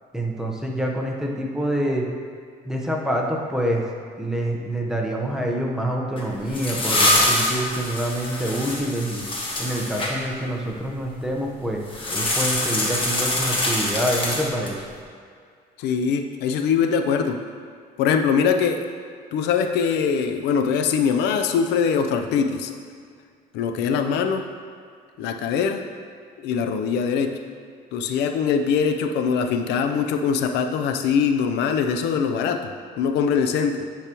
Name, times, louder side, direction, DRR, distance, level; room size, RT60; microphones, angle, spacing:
voice 1, 0.1-2.1 2.6-3.8 4.2-9.3 9.6-11.8 12.1-14.8, right 1 dB, 5° right, -1 dB, 1.0 m, -26 dB
sound 1, 6.2-10.1 11.9-14.8, left 1 dB, 30° left, 1.3 m, -24 dB
voice 2, 15.8-17.4 18.0-18.8 19.3-22.7 23.5-24.5 25.2-25.9 26.4-27.4 27.9-33.9, left 6 dB, 85° left, 6 dB, 0.6 m, -22 dB
10.0 x 4.9 x 3.0 m, 2.2 s
cardioid pair, 110°, 17 cm